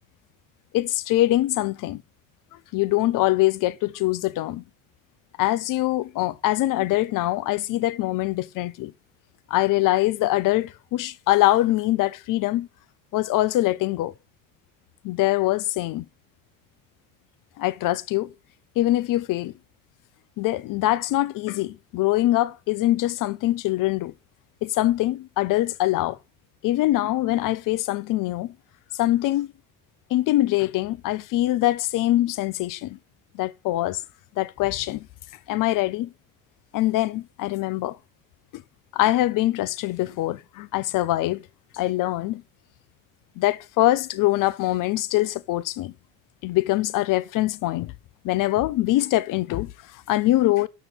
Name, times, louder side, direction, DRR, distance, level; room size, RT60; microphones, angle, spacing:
voice 1, 0.7-2.0 2.7-4.6 5.4-8.9 9.5-12.7 13.1-14.1 15.0-16.1 17.6-18.3 18.8-19.5 20.4-24.1 24.6-26.2 26.6-28.5 29.0-29.5 30.1-33.0 33.3-34.0 34.4-35.1 35.5-36.1 36.7-38.0 38.5-38.6 38.9-41.4 41.7-42.4 43.4-45.9 46.4-47.9 48.2-50.7, left 16 dB, 55° left, 0.7 m, -23 dB
6.6 x 6.0 x 4.6 m
supercardioid pair, 80°, 40 cm